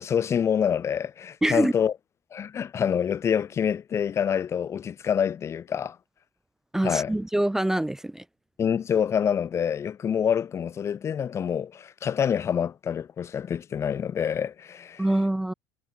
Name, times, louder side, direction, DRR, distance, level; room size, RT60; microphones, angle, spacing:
voice 1, 0.0-1.9 2.3-6.0 6.8-7.1 8.6-15.0, left 8 dB, 30° left, 1.0 m, -26 dB
voice 2, 1.4-1.7 6.7-8.2 15.0-15.5, right 1 dB, 5° right, 0.4 m, -24 dB
cardioid pair, 145°, 10 cm